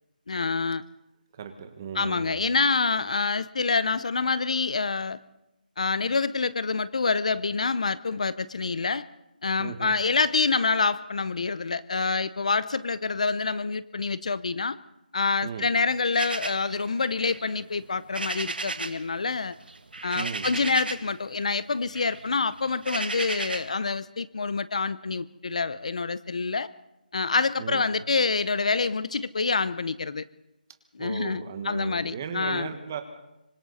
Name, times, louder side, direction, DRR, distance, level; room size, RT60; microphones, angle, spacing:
voice 1, 0.3-0.8 1.9-5.2 5.8-9.0 9.4-14.8 15.1-19.5 20.0-26.7 27.1-30.2 30.9-32.7, left 4 dB, 45° left, 17 dB, 0.7 m, -27 dB
voice 2, 1.3-2.4 9.6-10.0 15.4-15.7 20.1-20.5 27.6-27.8 31.0-33.0, right 7 dB, 20° right, 7 dB, 1.5 m, -36 dB
sound 1, 16.1-19.1 19.3-21.2 21.5-23.8, right 3 dB, 85° right, 2.0 m, -35 dB
25.5 x 25.0 x 4.2 m, 0.92 s
hypercardioid pair, 175°, 5 cm